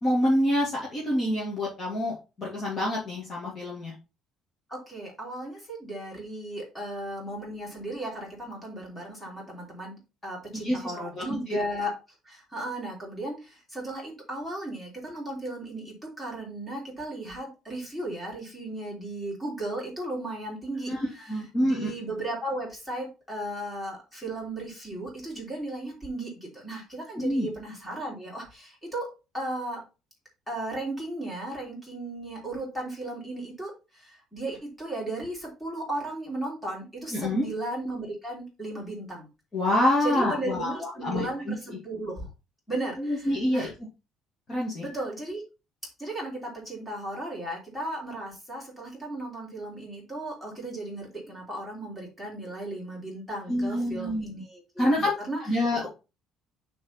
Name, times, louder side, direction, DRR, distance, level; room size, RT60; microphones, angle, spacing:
voice 1, 0.0-3.9 10.6-11.6 20.9-21.0 21.3-21.9 27.2-27.5 37.1-37.5 39.5-41.8 43.0-43.7 44.5-44.9 53.5-54.3 54.8-55.1 55.5-55.9, left 1 dB, 25° left, -4 dB, 2.3 m, -27 dB
voice 2, 4.7-11.9 12.2-20.9 21.6-29.1 29.3-29.8 30.5-39.3 40.0-42.3 42.7-43.7 44.8-45.4 46.0-54.9 55.3-55.4, right 1 dB, 5° left, -2 dB, 3.2 m, -35 dB
6.7 x 4.1 x 5.6 m, 0.29 s
cardioid pair, 175°, 0 cm